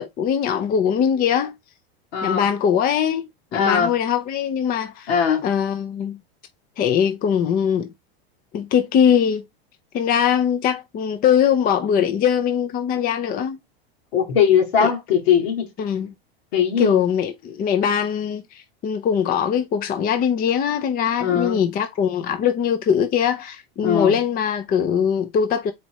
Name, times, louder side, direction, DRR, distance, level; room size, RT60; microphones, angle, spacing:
voice 1, 0.0-1.5 2.2-5.1 5.4-6.2 6.8-7.9 8.5-9.4 9.9-13.6 14.8-14.9 15.8-16.1 16.8-25.7, left 8 dB, 30° left, 0.6 m, -21 dB
voice 2, 2.1-2.5 3.5-3.9 5.1-5.5 14.1-15.7 16.5-17.0 21.2-21.6 23.8-24.2, left 7 dB, 75° left, 1.9 m, -20 dB
4.3 x 2.6 x 4.5 m
supercardioid pair, 115°, 31 cm